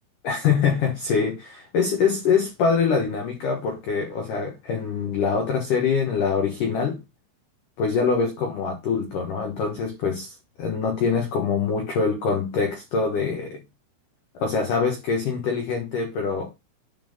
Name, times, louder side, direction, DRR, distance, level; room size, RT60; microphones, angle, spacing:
voice 1, 0.2-7.0 7.8-13.6 14.3-16.5, left 5 dB, 85° left, 1.8 m, -24 dB
10.0 x 3.5 x 5.5 m
omnidirectional pair, 5.9 m